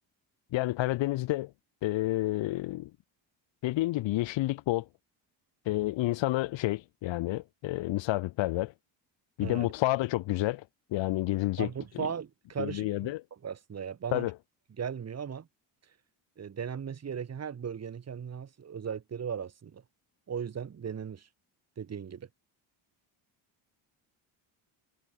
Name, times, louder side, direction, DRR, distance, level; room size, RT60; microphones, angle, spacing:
voice 1, 0.5-1.5 1.8-2.9 3.6-4.9 5.7-8.7 9.4-10.6 10.9-11.7 12.0-12.1 12.6-13.2 14.1-14.3, left 17 dB, 75° left, 2.2 m, -29 dB
voice 2, 9.4-9.7 11.6-13.1 13.4-14.3 14.8-15.5 16.4-19.8 20.3-21.3 21.8-22.3, right 7 dB, 35° right, 6.4 m, -37 dB
cardioid pair, 150°, 45 cm